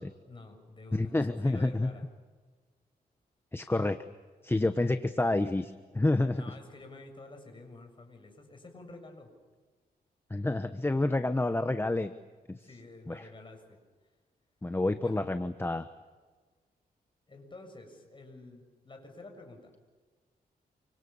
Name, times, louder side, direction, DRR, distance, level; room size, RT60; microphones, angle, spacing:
voice 1, 0.3-2.1 6.3-9.3 12.6-13.8 15.0-15.2 17.3-19.8, left 2 dB, 30° left, 4 dB, 7.0 m, -49 dB
voice 2, 0.9-1.9 3.5-4.0 4.4-6.4 10.3-12.1 12.5-12.6 13.1-13.2 14.6-15.9, left 2 dB, 15° left, 9 dB, 1.1 m, -28 dB
29.0 x 25.5 x 7.1 m, 1.4 s
wide cardioid pair, 110°, 17 cm